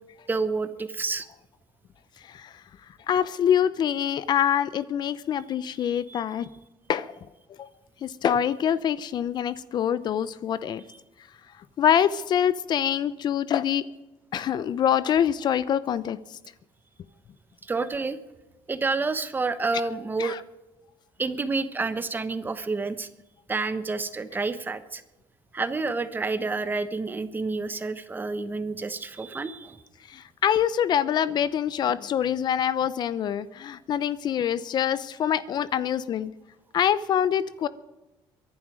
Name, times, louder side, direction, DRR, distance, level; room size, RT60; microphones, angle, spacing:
voice 1, 0.3-1.3 5.8-6.2 17.6-18.2 18.7-20.4 21.2-23.1 23.5-25.0 25.5-29.8, right 3 dB, 20° right, 11 dB, 1.1 m, -29 dB
voice 2, 3.1-6.5 6.9-7.1 7.6-7.7 8.0-10.8 11.8-13.8 14.3-16.2 20.2-20.4 30.1-36.3 36.7-37.7, left 9 dB, 50° left, 16 dB, 0.7 m, -25 dB
23.0 x 11.5 x 5.0 m, 1.0 s
cardioid pair, 125°, 10 cm